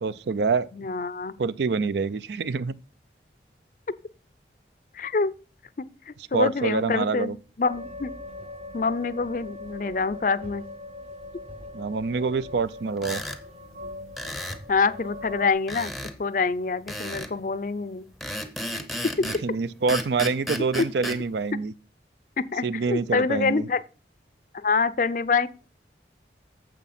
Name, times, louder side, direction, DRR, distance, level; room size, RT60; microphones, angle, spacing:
voice 1, 0.0-0.7 1.4-2.7 6.3-7.3 11.7-13.2 19.2-21.7 22.6-23.7, right 4 dB, 75° right, 0.4 m, -26 dB
voice 2, 0.7-1.3 4.9-5.3 6.1-8.1 8.7-10.6 14.7-15.9 16.2-18.0 22.4-23.8 24.5-25.5, left 4 dB, 45° left, 0.5 m, -26 dB
sound 1, 7.6-15.5, left 2 dB, 35° right, 0.8 m, -41 dB
sound 2, 13.0-13.4 14.2-14.6 15.7-16.2 16.9-17.3 18.2-19.5 19.9-21.2, equal, ahead, 0.6 m, -33 dB
9.1 x 7.1 x 4.2 m
head